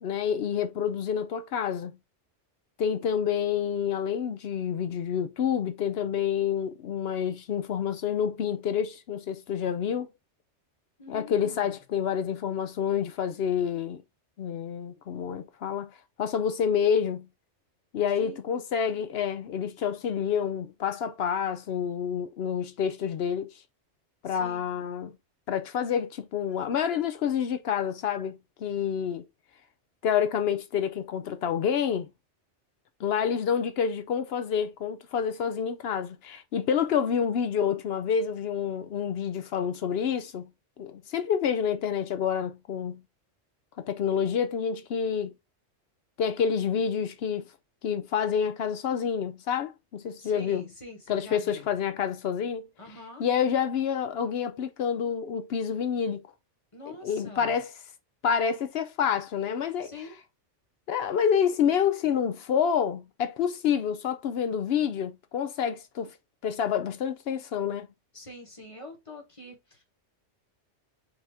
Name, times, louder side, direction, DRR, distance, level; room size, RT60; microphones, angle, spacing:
voice 1, 0.0-2.0 2.8-10.1 11.1-14.0 14.4-17.3 17.9-23.5 24.2-25.1 25.5-29.2 30.0-32.1 33.0-40.5 40.8-43.0 43.8-45.3 46.2-47.5 47.8-50.7 51.1-52.6 53.2-56.2 57.0-57.7 58.2-59.9 60.9-66.1 66.4-67.9, left 7 dB, 65° left, 0.7 m, -28 dB
voice 2, 11.0-11.8 18.2-18.4 24.2-24.7 50.2-51.7 52.8-53.2 56.7-57.6 59.8-60.2 68.1-69.8, left 2 dB, 30° left, 1.3 m, -45 dB
4.8 x 2.7 x 3.5 m
omnidirectional pair, 1.2 m